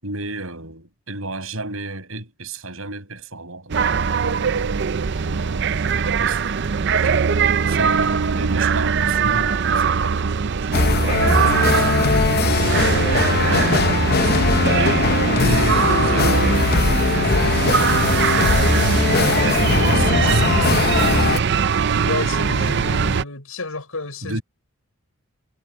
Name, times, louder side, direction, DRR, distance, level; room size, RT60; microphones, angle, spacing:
voice 1, 0.0-4.4 5.3-6.6 7.0-7.3 7.7-12.7 13.3-14.7 15.4-21.3 24.2-24.4, right 2 dB, 70° right, 7.0 m, -33 dB
sound 1, 3.7-23.2, right 6 dB, 50° right, 0.5 m, -21 dB
sound 2, 10.7-21.4, left 4 dB, 45° left, 0.7 m, -20 dB
voice 2, 22.0-24.4, left 2 dB, 75° left, 5.4 m, -30 dB
head